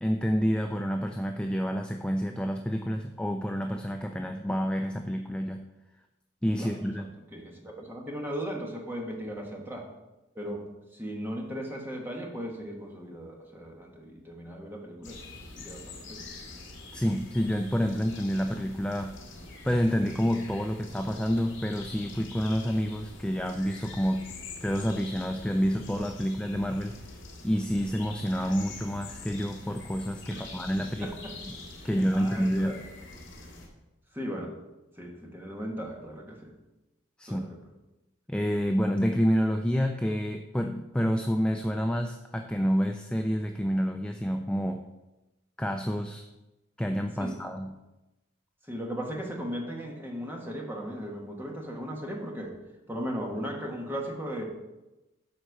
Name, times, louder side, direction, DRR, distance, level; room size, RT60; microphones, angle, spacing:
voice 1, 0.0-5.6 6.4-7.1 16.9-19.2 19.6-24.3 24.6-27.0 27.4-31.1 31.8-32.7 37.2-37.4 38.3-44.8 45.6-46.2 46.8-47.7, equal, 5° left, 4 dB, 0.3 m, -28 dB
voice 2, 7.3-9.9 10.3-15.2 15.5-16.2 27.8-28.1 30.3-30.5 31.0-31.3 31.8-32.8 34.1-34.5 34.9-36.5 37.3-37.6 47.1-47.4 48.6-52.5 52.9-54.4, equal, 10° right, 0 dB, 1.4 m, -37 dB
sound 1, 15.0-33.7, left 2 dB, 65° left, 2.0 m, -45 dB
9.4 x 4.4 x 6.5 m, 1.0 s
head